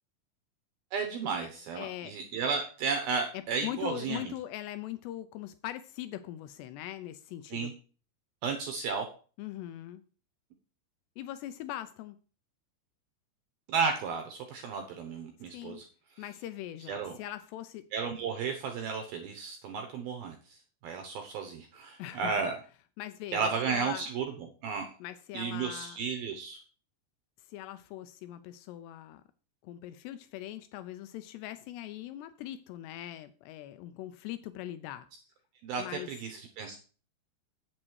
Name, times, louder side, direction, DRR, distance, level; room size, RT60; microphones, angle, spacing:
voice 1, 0.9-4.3 7.5-7.7 8.4-9.1 13.7-15.9 16.9-17.2 17.9-22.6 23.3-24.8 25.3-26.6 35.6-36.8, right 5 dB, 75° right, 6 dB, 2.3 m, -33 dB
voice 2, 1.8-2.1 3.3-7.7 9.4-10.0 11.2-12.2 15.5-15.8 16.2-17.9 22.0-22.3 23.0-24.1 25.0-26.0 27.5-29.2 29.6-35.1 35.8-36.1, left 13 dB, 85° left, 11 dB, 2.4 m, -41 dB
8.8 x 7.4 x 4.7 m, 0.38 s
omnidirectional pair, 5.4 m